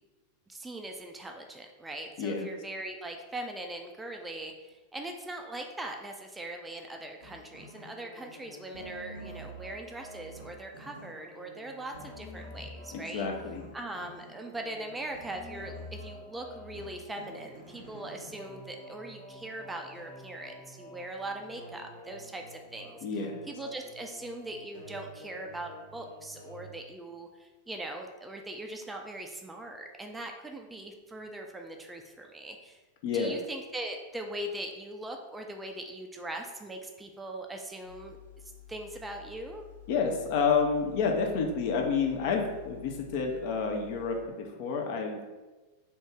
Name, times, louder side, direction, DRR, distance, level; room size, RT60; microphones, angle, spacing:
voice 1, 0.5-13.3 13.7-23.0 23.5-32.8 33.1-38.2 38.7-39.6, right 1 dB, 10° right, 3 dB, 0.3 m, -41 dB
voice 2, 2.2-2.5 12.9-13.6 23.0-23.4 33.0-33.4 39.9-45.2, left 5 dB, 50° left, 2 dB, 0.5 m, -29 dB
sound 1, 7.2-26.7, equal, 75° left, 1.2 m, -48 dB
sound 2, 37.8-44.2, left 11 dB, 90° left, 0.7 m, -50 dB
2.8 x 2.6 x 3.4 m, 1.2 s
figure-of-eight pair, 90°, 0 cm